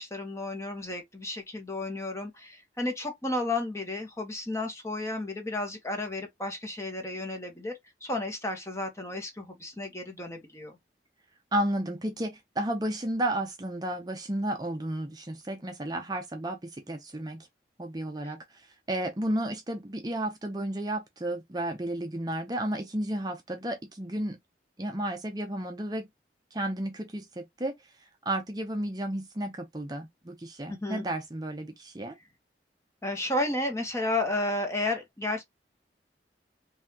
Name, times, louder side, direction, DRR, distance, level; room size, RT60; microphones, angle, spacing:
voice 1, 0.0-10.8 18.2-18.3 30.7-31.0 33.0-35.4, left 2 dB, 15° left, 1.2 m, -32 dB
voice 2, 11.5-17.5 17.8-24.4 24.8-26.1 26.5-27.7 28.0-32.2, right 1 dB, 20° right, 0.6 m, -32 dB
5.5 x 2.7 x 2.8 m
head